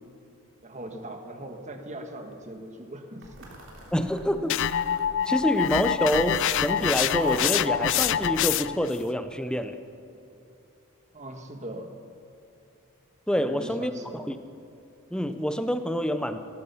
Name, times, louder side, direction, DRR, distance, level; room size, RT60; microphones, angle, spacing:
voice 1, 0.6-3.5 11.1-12.0 13.3-14.3, right 1 dB, 30° right, 5 dB, 1.5 m, -40 dB
sound 1, 3.2-8.4, right 1 dB, 55° right, 3.2 m, -42 dB
voice 2, 3.9-4.6 5.3-9.8 13.3-14.4 15.1-16.4, equal, 5° left, 9 dB, 0.6 m, -27 dB
sound 2, 4.5-8.9, left 10 dB, 55° left, 0.4 m, -25 dB
17.5 x 14.0 x 5.7 m, 2.8 s
head